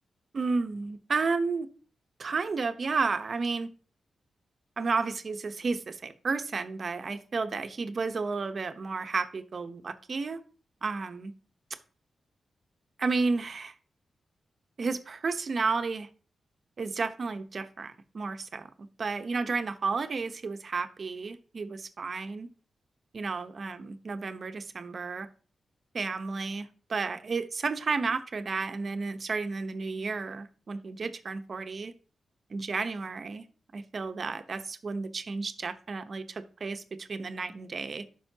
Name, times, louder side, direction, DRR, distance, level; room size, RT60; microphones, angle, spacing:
voice 1, 0.3-1.7 2.2-3.7 4.8-10.4 10.8-11.3 13.0-13.7 14.8-16.1 16.8-22.5 23.1-25.3 25.9-31.9 32.5-33.4 33.7-38.0, right 4 dB, 55° right, 9 dB, 0.9 m, -32 dB
10.5 x 6.3 x 2.8 m, 0.39 s
cardioid pair, 60°, 0 cm